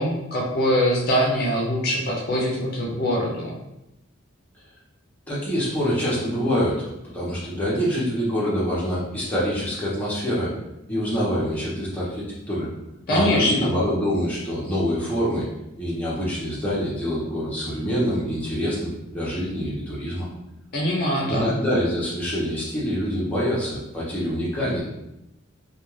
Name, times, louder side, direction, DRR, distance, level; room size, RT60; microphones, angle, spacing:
voice 1, 0.0-3.6 13.1-13.7 20.7-21.5, equal, 50° left, -4 dB, 0.5 m, -23 dB
voice 2, 5.3-10.5 10.9-12.7 13.1-15.5 15.8-20.3 21.3-24.8, equal, 10° left, -8 dB, 0.8 m, -25 dB
2.4 x 2.3 x 3.0 m, 0.88 s
head